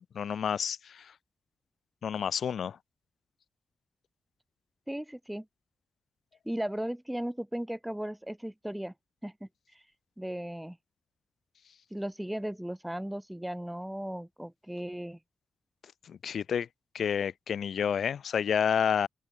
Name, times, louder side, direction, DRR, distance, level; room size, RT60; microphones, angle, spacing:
voice 1, 0.1-1.1 2.0-2.8 16.1-16.7 16.9-19.1, left 7 dB, 75° left, 1.2 m, -29 dB
voice 2, 4.9-5.5 6.5-8.9 9.2-9.5 10.2-10.8 11.9-15.2, right 1 dB, 5° right, 3.6 m, -36 dB
open air
wide cardioid pair, 110°, 0 cm